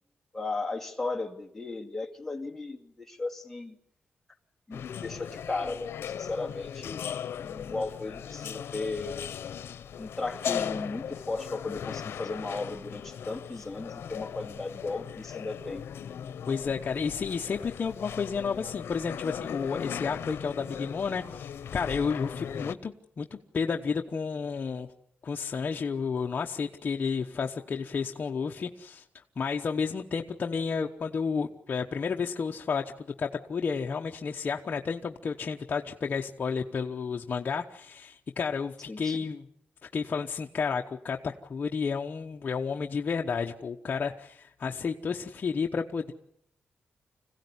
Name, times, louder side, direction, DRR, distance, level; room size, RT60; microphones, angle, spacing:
voice 1, 0.3-3.8 4.7-7.0 7.4-9.3 10.0-15.8 38.9-39.2, left 3 dB, 5° left, 1 dB, 2.4 m, -35 dB
sound 1, 4.7-22.7, left 8 dB, 85° left, 0.9 m, -38 dB
voice 2, 16.5-24.9 25.2-29.0 29.4-39.5 39.9-46.1, left 5 dB, 40° left, 2 dB, 1.0 m, -31 dB
26.0 x 16.5 x 9.7 m, 0.73 s
wide cardioid pair, 150°, 4 cm